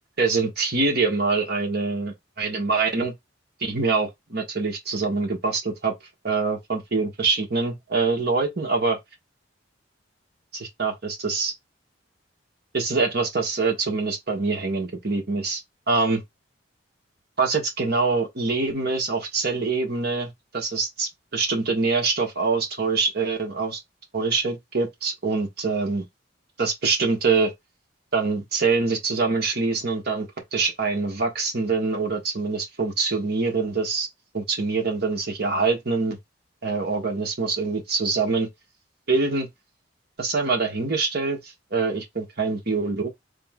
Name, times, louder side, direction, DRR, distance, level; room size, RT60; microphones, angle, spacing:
voice 1, 0.2-3.1 3.6-5.9 6.2-9.0 10.5-11.5 12.7-15.6 15.9-16.2 17.4-23.8 24.1-26.0 26.6-27.5 28.1-34.1 34.3-36.2 36.6-38.5 39.1-39.5 40.2-43.1, right 4 dB, 55° right, 1.4 m, -24 dB
3.6 x 2.9 x 3.7 m
head